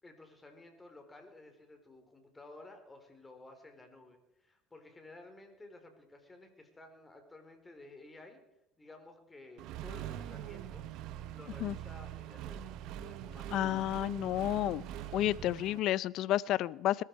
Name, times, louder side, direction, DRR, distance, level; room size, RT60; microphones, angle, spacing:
voice 1, 0.0-8.4 8.8-10.9 11.3-13.5, left 2 dB, 15° left, 5 dB, 4.2 m, -54 dB
Accelerating revving vroom, 9.6-15.8, right 11 dB, 65° right, 1.0 m, -43 dB
voice 2, 13.5-14.8 15.1-17.0, left 13 dB, 60° left, 21 dB, 0.5 m, -31 dB
21.0 x 13.0 x 4.8 m, 0.84 s
supercardioid pair, 90°, 0 cm